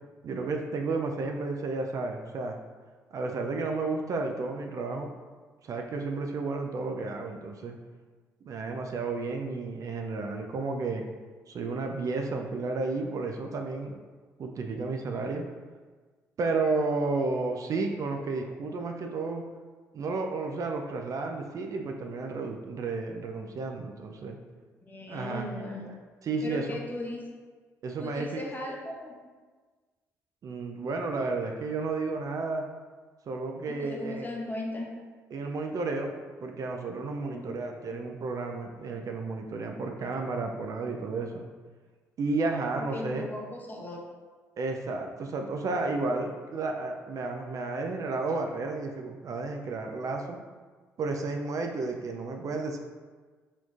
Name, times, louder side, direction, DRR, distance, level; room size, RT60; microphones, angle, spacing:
voice 1, 0.2-2.6 3.1-5.1 5.6-7.7 8.4-11.0 11.5-14.0 14.4-15.5 16.4-19.4 19.9-24.4 25.1-26.0 26.2-26.8 27.8-28.4 30.4-32.6 33.3-34.3 35.3-36.1 36.4-41.5 42.2-43.3 44.6-50.4 51.0-52.8, right 3 dB, 50° right, 3 dB, 0.4 m, -32 dB
voice 2, 24.8-25.8 26.4-27.2 28.0-29.2 33.7-34.9 37.2-37.5 37.9-38.1 42.8-44.0, left 2 dB, 25° left, 0 dB, 0.8 m, -37 dB
4.2 x 2.9 x 2.4 m, 1.4 s
hypercardioid pair, 50°, 7 cm